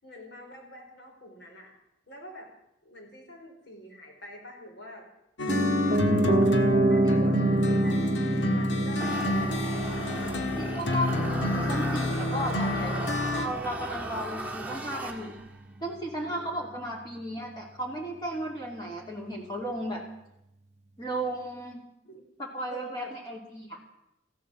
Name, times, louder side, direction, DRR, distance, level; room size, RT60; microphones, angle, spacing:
voice 1, 0.0-1.8 2.1-2.5 2.8-5.1 5.8-10.4 12.3-13.4 14.1-14.3 16.2-16.8 22.0-22.2 22.7-23.2, equal, 65° left, 1 dB, 4.7 m, -46 dB
sound 1, 5.4-13.5, left 2 dB, 85° left, 1.7 m, -29 dB
Piano, 5.5-15.5 15.8-15.9, right 1 dB, 40° right, 0.9 m, -28 dB
sound 2, 9.0-15.6, right 2 dB, 10° right, 1.6 m, -37 dB
voice 2, 10.6-12.9 13.4-15.3 15.8-20.0 21.0-21.8 22.4-23.8, right 1 dB, 25° left, -2 dB, 2.7 m, -34 dB
15.0 x 12.5 x 7.5 m, 0.85 s
head